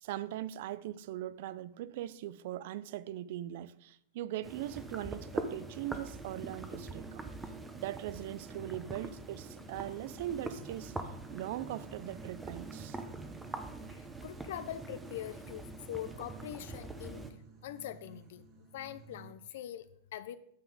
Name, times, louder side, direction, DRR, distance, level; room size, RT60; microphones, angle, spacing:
voice 1, 0.0-7.3 7.7-10.9 11.3-13.0, right 13 dB, 65° right, 0.4 m, -40 dB
sound 1, 4.4-17.3, right 2 dB, 10° right, 0.8 m, -44 dB
sound 2, 10.5-19.3, right 5 dB, 35° right, 1.6 m, -55 dB
voice 2, 13.9-17.2 17.6-20.4, left 12 dB, 75° left, 0.5 m, -43 dB
9.3 x 7.0 x 3.9 m
supercardioid pair, 145°, 0 cm